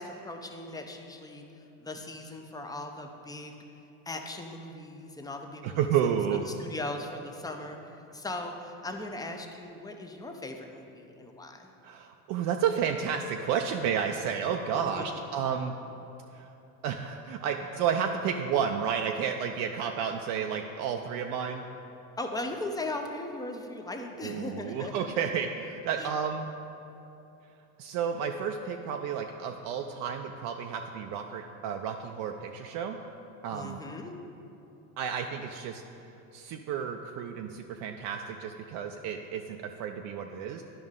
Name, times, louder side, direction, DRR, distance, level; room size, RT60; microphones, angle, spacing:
voice 1, 0.0-3.6 4.1-6.1 6.6-11.7 14.9-15.1 22.2-25.1 25.9-26.1 33.5-34.1, left 2 dB, 10° left, 4 dB, 0.5 m, -39 dB
voice 2, 5.6-6.4 11.8-15.7 16.3-16.5 16.8-21.6 24.2-26.5 27.8-33.0 33.4-33.8 35.0-35.8 36.3-40.6, right 7 dB, 55° right, 4 dB, 0.5 m, -31 dB
11.0 x 5.3 x 3.6 m, 2.8 s
supercardioid pair, 115°, 39 cm